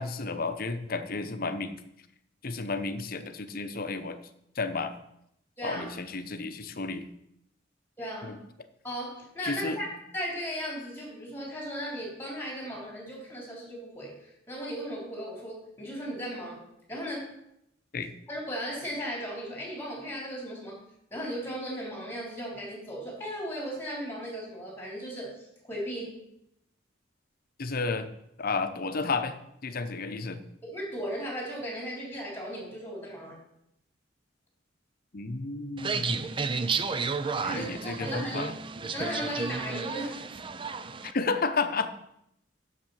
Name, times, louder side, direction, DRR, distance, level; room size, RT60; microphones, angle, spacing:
voice 1, 0.0-1.8 2.4-4.2 4.6-5.0 5.6-7.1 8.2-8.4 9.4-9.8 17.9-18.1 27.6-28.1 28.4-29.4 29.6-30.4 35.1-36.3 37.5-38.5 41.0-41.9, left 3 dB, 50° left, 9 dB, 0.8 m, -32 dB
voice 2, 5.6-6.0 8.0-8.4 8.8-9.9 10.1-16.6 16.9-17.3 18.3-20.8 21.1-26.2 30.6-33.4 37.4-38.4 38.9-40.2, equal, 10° left, -2 dB, 3.5 m, -36 dB
sound 1, 35.8-41.1, right 4 dB, 25° right, 0.5 m, -32 dB
7.6 x 6.8 x 7.0 m, 0.78 s
head